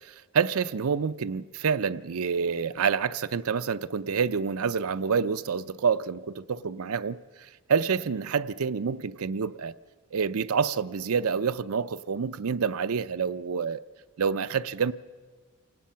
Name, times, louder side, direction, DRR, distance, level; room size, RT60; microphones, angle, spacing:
voice 1, 0.0-9.7 10.1-13.8 14.2-14.9, right 6 dB, 80° right, 0.5 m, -28 dB
28.5 x 18.0 x 5.7 m
head